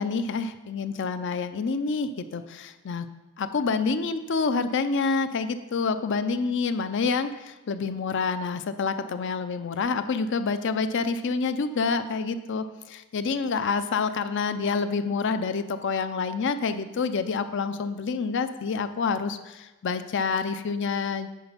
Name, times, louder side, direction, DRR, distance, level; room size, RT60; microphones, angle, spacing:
voice 1, 0.0-3.1 3.4-21.5, left 4 dB, 55° left, 11 dB, 0.5 m, -27 dB
10.0 x 4.3 x 5.6 m, 1.1 s
head